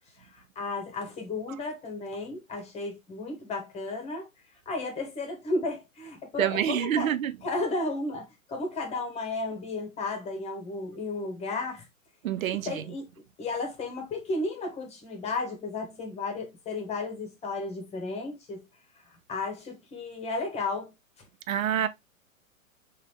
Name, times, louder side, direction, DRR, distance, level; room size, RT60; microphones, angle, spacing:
voice 1, 0.2-4.3 4.7-7.1 7.4-11.8 12.6-13.0 13.4-18.7 19.1-20.9, left 3 dB, 15° left, 1.0 m, -33 dB
voice 2, 6.4-7.3 12.2-12.8 21.5-21.9, right 10 dB, 80° right, 0.5 m, -27 dB
3.9 x 2.6 x 3.2 m
hypercardioid pair, 125°, 41 cm